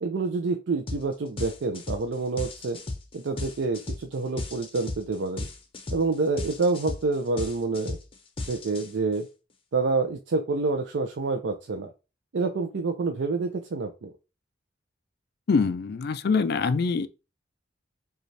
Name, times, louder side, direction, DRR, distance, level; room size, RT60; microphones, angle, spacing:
voice 1, 0.0-2.8 3.1-5.5 5.9-8.0 8.5-9.3 9.7-11.9 12.3-14.1, right 3 dB, 75° right, 0.5 m, -27 dB
sound 1, 0.9-1.1 1.4-9.2, left 2 dB, 30° left, 0.7 m, -35 dB
voice 2, 15.5-17.1, left 4 dB, 60° left, 0.4 m, -24 dB
5.1 x 2.4 x 3.2 m
head